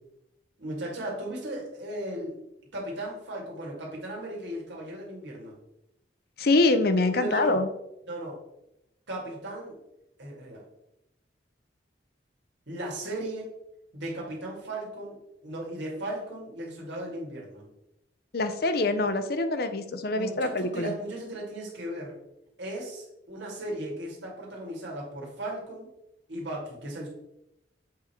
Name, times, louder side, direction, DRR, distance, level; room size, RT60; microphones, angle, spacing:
voice 1, 0.6-2.4 2.7-5.5 7.1-7.6 8.1-8.4 9.1-9.7 10.2-10.6 12.7-13.6 13.9-17.6 20.1-22.2 22.6-25.9 26.3-27.1, right 1 dB, 75° right, -3 dB, 2.3 m, -36 dB
voice 2, 6.4-7.7 18.3-20.9, left 2 dB, 55° left, 10 dB, 0.6 m, -25 dB
7.5 x 3.7 x 4.4 m, 0.85 s
head